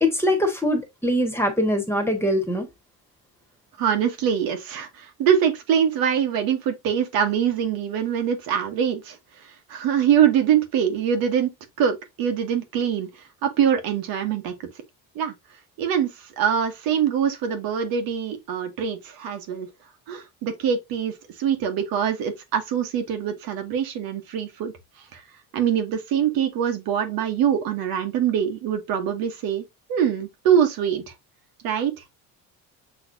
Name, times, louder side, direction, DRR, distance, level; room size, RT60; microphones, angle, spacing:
voice 1, 0.0-2.7, left 1 dB, 5° left, 1.3 m, -22 dB
voice 2, 3.8-9.2 9.7-11.5 11.8-13.1 13.4-14.5 15.1-15.3 15.8-19.7 20.1-24.7 25.1-25.2 25.5-29.6 29.9-31.0 31.6-31.9, right 8 dB, 90° right, 1.2 m, -23 dB
6.3 x 3.1 x 2.6 m
cardioid pair, 115°, 34 cm